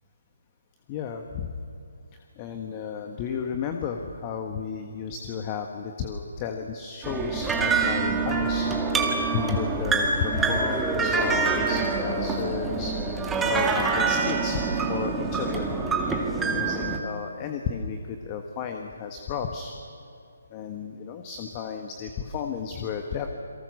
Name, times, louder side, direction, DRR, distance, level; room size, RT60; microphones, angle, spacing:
voice 1, 0.9-1.5 2.4-8.7 9.0-15.7 16.5-19.7 20.5-23.3, left 6 dB, 25° left, 4 dB, 1.6 m, -33 dB
sound 1, 7.0-17.0, right 4 dB, 10° right, 2.0 m, -26 dB
28.5 x 23.0 x 6.6 m, 2.4 s
figure-of-eight pair, 150°, 0 cm